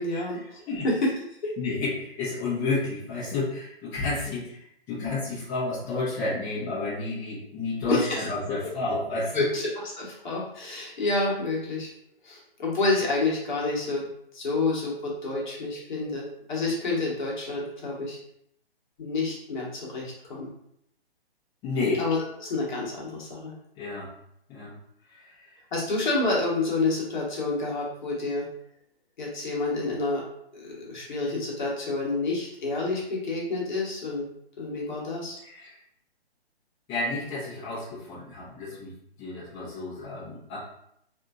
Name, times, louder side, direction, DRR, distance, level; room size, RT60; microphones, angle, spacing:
voice 1, 0.0-1.5 7.9-8.3 9.3-9.7 10.0-11.9 12.2-14.1 14.3-18.2 19.0-20.5 22.0-23.5 25.7-28.4 29.2-30.2 30.5-34.2 34.6-35.4, left 2 dB, 50° left, -4 dB, 1.2 m, -28 dB
voice 2, 1.6-4.6 4.9-9.5 21.6-22.0 23.8-24.1 24.5-24.7 25.1-25.3 35.4-35.7 36.9-38.9 39.2-40.6, left 3 dB, 15° left, -11 dB, 0.8 m, -31 dB
3.6 x 2.6 x 2.4 m, 0.73 s
figure-of-eight pair, 135°, 31 cm